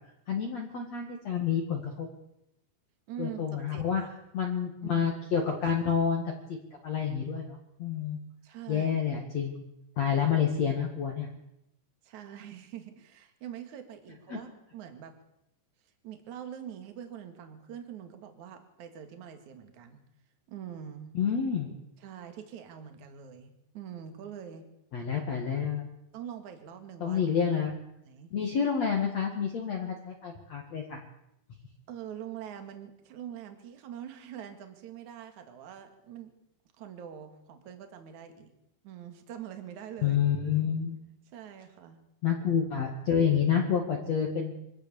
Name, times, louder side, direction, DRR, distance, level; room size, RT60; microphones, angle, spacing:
voice 1, 0.3-2.1 3.2-4.0 4.3-6.6 6.8-8.2 8.7-9.5 10.0-11.3 14.3-14.4 21.1-21.7 24.9-25.9 27.0-27.7 28.3-31.0 40.0-41.0 42.2-44.5, left 7 dB, 50° left, 1 dB, 2.4 m, -28 dB
voice 2, 3.1-4.1 4.8-5.1 8.4-8.9 12.0-15.1 16.0-20.0 20.5-21.1 22.0-24.7 26.1-27.2 28.0-28.3 31.9-36.3 36.8-38.5 38.8-40.2 41.3-42.0, right 9 dB, 50° right, 7 dB, 3.0 m, -44 dB
24.5 x 16.5 x 7.1 m, 0.82 s
omnidirectional pair, 5.1 m